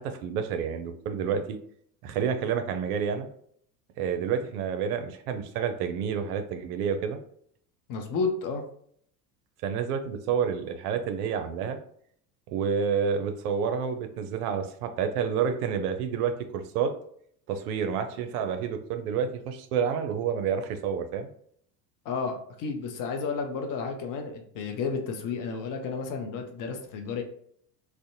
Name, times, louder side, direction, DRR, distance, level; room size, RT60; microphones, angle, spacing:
voice 1, 0.0-1.6 2.0-3.3 4.0-7.2 9.6-11.8 12.5-16.9 17.5-21.3, right 7 dB, 65° right, 8 dB, 0.5 m, -29 dB
voice 2, 7.9-8.6 22.0-27.2, left 5 dB, 40° left, 4 dB, 0.5 m, -32 dB
2.6 x 2.1 x 2.5 m, 0.64 s
hypercardioid pair, 80°, 50 cm